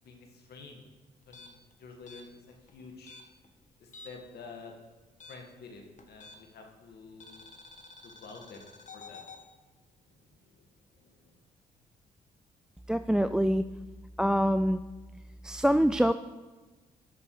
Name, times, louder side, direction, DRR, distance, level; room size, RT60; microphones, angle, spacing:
voice 1, 0.0-0.9 1.3-3.2 3.8-4.7 5.3-7.4 8.0-9.3 10.1-10.6 10.9-11.4, left 4 dB, 70° left, 2 dB, 2.0 m, -50 dB
sound 1, 1.2-4.4 4.6-6.7 7.2-9.4, left 3 dB, 45° left, 1.5 m, -51 dB
voice 2, 12.9-13.6 14.2-14.8 15.4-16.1, equal, 5° right, 11 dB, 0.4 m, -25 dB
13.0 x 6.2 x 4.8 m, 1.2 s
supercardioid pair, 50°, 17 cm